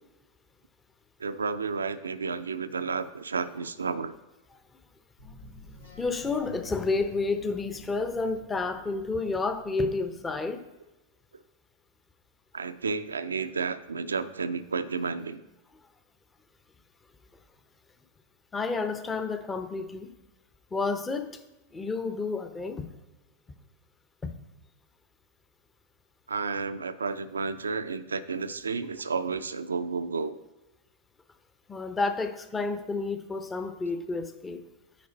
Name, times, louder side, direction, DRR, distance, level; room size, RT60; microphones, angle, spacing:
voice 1, 1.2-4.1 12.5-15.4 26.3-30.4, right 5 dB, 75° right, 12 dB, 0.5 m, -31 dB
Guitar drone, 5.2-10.4, equal, 80° left, 2.3 m, -50 dB
voice 2, 6.0-10.7 18.5-20.1 20.7-21.4 21.7-22.9 24.2-24.3 31.7-34.6, left 3 dB, 15° left, 9 dB, 0.7 m, -30 dB
9.4 x 5.0 x 4.0 m, 1.1 s
figure-of-eight pair, 90°, 0 cm